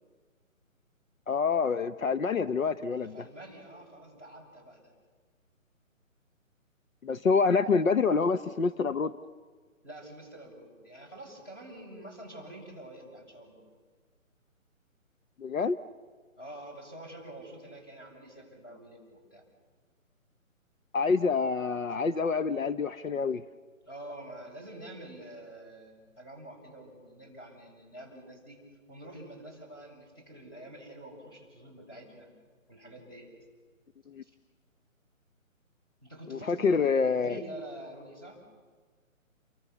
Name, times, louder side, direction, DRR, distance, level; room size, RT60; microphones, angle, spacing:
voice 1, 1.3-3.2 7.0-9.1 15.4-15.8 20.9-23.4 34.1-34.2 36.5-37.4, left 5 dB, 70° left, 11 dB, 1.1 m, -27 dB
voice 2, 3.0-4.9 9.8-13.6 16.4-19.4 21.9-22.0 23.8-28.6 28.9-32.3 32.7-33.3 34.2-34.3 36.0-38.4, right 1 dB, 15° left, -2 dB, 7.1 m, -46 dB
29.5 x 24.0 x 7.2 m, 1.5 s
hypercardioid pair, 175°, 41 cm